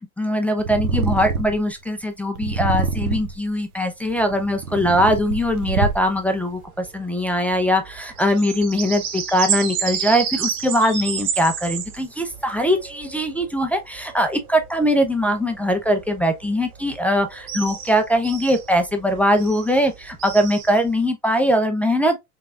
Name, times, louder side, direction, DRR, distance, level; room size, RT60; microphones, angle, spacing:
voice 1, 0.0-22.2, equal, 5° left, 0.5 m, -21 dB
Purr, 0.6-1.7 2.4-3.4 4.2-6.3, right 5 dB, 75° right, 0.9 m, -25 dB
sound 1, 4.1-21.0, right 8 dB, 60° right, 2.1 m, -31 dB
3.8 x 3.3 x 2.3 m
hypercardioid pair, 95°, 44 cm